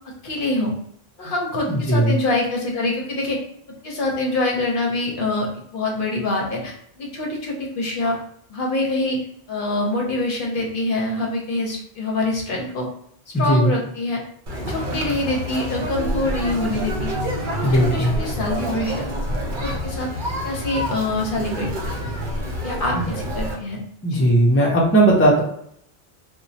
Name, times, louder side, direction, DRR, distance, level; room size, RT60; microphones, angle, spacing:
voice 1, 0.2-0.7 1.2-3.4 3.8-8.2 8.5-9.2 9.5-12.9 13.4-14.2 14.7-17.1 17.5-19.1 19.4-20.1 20.4-22.0 22.6-23.8 24.1-24.2, left 2 dB, 60° left, -1 dB, 0.8 m, -25 dB
voice 2, 1.7-2.1 13.3-13.7 17.6-18.1 22.9-23.1 24.0-25.4, right 1 dB, 15° left, -3 dB, 0.5 m, -17 dB
Conversation, 14.5-23.5, equal, 55° right, 0.7 m, -27 dB
3.0 x 2.2 x 2.7 m, 0.69 s
omnidirectional pair, 1.1 m